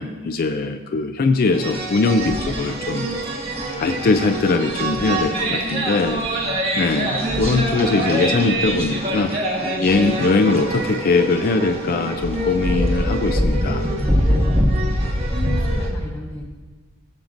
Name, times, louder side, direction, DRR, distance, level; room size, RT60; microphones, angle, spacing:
voice 1, 0.0-6.3 6.8-13.9, left 3 dB, 40° left, 7 dB, 0.4 m, -21 dB
sound 1, 1.5-15.9, equal, 25° right, 1.4 m, -23 dB
voice 2, 9.8-10.4 14.9-16.4, equal, 10° left, -4 dB, 0.9 m, -36 dB
16.5 x 7.4 x 2.6 m, 1.4 s
head